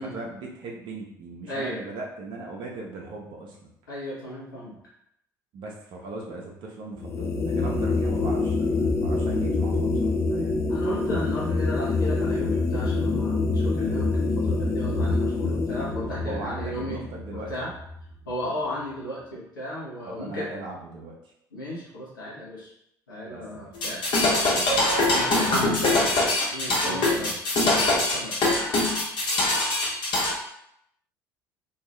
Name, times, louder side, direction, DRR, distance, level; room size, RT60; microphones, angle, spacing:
voice 1, 0.0-3.7 5.5-10.1 16.1-17.5 20.0-21.1 23.2-23.4 25.3-25.8 26.8-27.3, right 3 dB, 50° right, -1 dB, 0.6 m, -38 dB
voice 2, 1.5-1.8 3.9-4.7 8.7-8.9 10.3-17.0 17.3-17.7 18.3-20.5 21.5-22.7 23.1-26.2 26.5-28.4, equal, 80° left, -7 dB, 0.6 m, -35 dB
sound 1, 7.0-18.3, left 3 dB, 25° left, 0.4 m, -26 dB
sound 2, 23.8-30.3, left 2 dB, 50° left, 1.0 m, -23 dB
2.6 x 2.3 x 3.1 m, 0.76 s
figure-of-eight pair, 55°, 10 cm